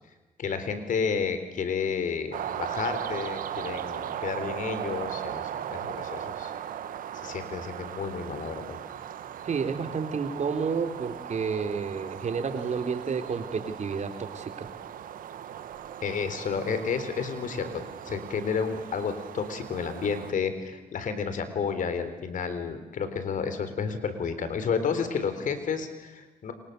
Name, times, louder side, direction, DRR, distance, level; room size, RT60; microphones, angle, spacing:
voice 1, 0.4-6.5 7.2-8.8 16.0-26.5, left 6 dB, 70° left, 10 dB, 3.8 m, -31 dB
sound 1, 2.3-20.3, right 10 dB, 80° right, 1.4 m, -38 dB
voice 2, 9.4-14.7, right 5 dB, 55° right, 6 dB, 3.7 m, -30 dB
28.5 x 24.5 x 6.8 m, 1.1 s
supercardioid pair, 60°, 14 cm